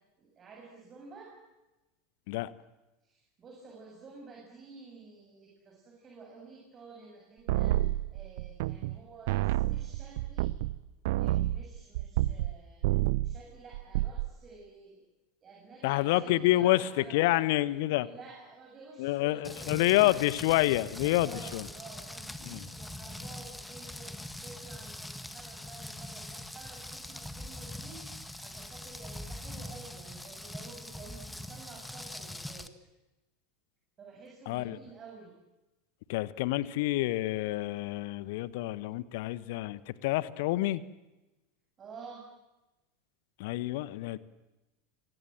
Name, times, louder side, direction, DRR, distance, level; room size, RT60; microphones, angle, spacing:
voice 1, 0.2-1.3 3.0-10.5 11.2-12.8 13.2-15.1 15.4-17.4 18.0-20.2 20.9-32.7 34.0-35.4 41.8-42.3, right 4 dB, 30° right, 0 dB, 7.3 m, -51 dB
sound 1, 7.5-9.0 9.3-12.6 12.8-13.4 13.7-14.3, right 16 dB, 55° right, 0.9 m, -29 dB
voice 2, 15.8-18.1 19.0-21.7 22.4-22.6 34.5-34.8 36.1-40.8 43.4-44.2, left 17 dB, 55° left, 17 dB, 1.3 m, -28 dB
Rain, 19.4-32.7, left 1 dB, 5° left, 1.8 m, -43 dB
29.0 x 24.5 x 7.7 m, 1.0 s
figure-of-eight pair, 80°, 0 cm